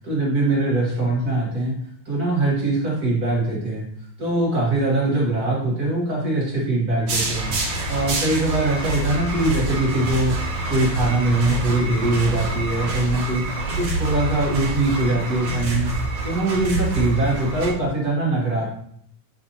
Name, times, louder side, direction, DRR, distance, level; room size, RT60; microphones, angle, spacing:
voice 1, 0.1-1.7 2.0-3.9 4.2-7.5 7.9-13.4 13.8-15.9 16.2-18.7, right 2 dB, 45° right, -4 dB, 1.2 m, -22 dB
sound 1, 7.1-17.7, right 2 dB, 75° right, 3.0 m, -26 dB
9.9 x 4.2 x 2.8 m, 0.66 s
omnidirectional pair, 3.5 m